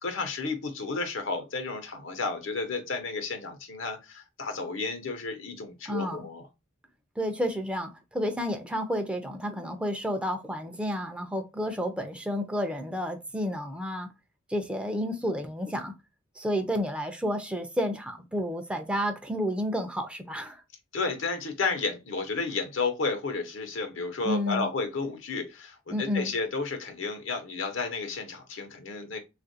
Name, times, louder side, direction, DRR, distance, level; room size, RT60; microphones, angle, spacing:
voice 1, 0.0-6.5 20.9-29.2, left 4 dB, 80° left, 0.8 m, -32 dB
voice 2, 5.9-6.2 7.2-14.1 14.5-15.9 16.4-20.6 24.2-24.7 25.9-26.3, equal, 5° right, 0.4 m, -31 dB
3.5 x 2.4 x 2.6 m
head